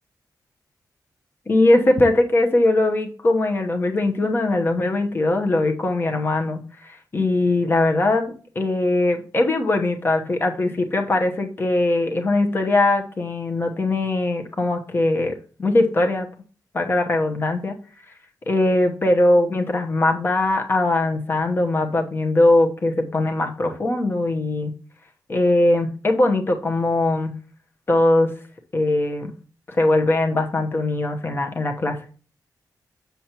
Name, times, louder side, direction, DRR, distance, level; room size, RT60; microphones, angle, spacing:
voice 1, 1.5-16.3 16.7-17.8 18.5-24.7 25.3-27.3 27.9-28.3 28.7-29.3 29.7-32.0, left 2 dB, 30° left, 4 dB, 1.0 m, -20 dB
7.1 x 6.9 x 2.9 m, 0.39 s
wide cardioid pair, 150°, 7 cm